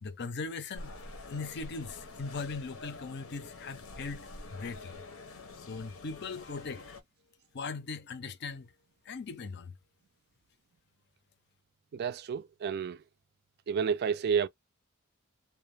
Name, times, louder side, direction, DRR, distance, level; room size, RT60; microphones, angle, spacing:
voice 1, 0.0-1.0 1.3-5.2 5.7-6.8 7.5-8.7 9.1-9.7, left 4 dB, 55° left, 0.5 m, -39 dB
sound 1, 0.7-7.0, left 2 dB, 85° left, 0.8 m, -47 dB
voice 2, 11.9-13.0 13.7-14.5, right 7 dB, 50° right, 0.3 m, -30 dB
2.6 x 2.2 x 3.2 m
head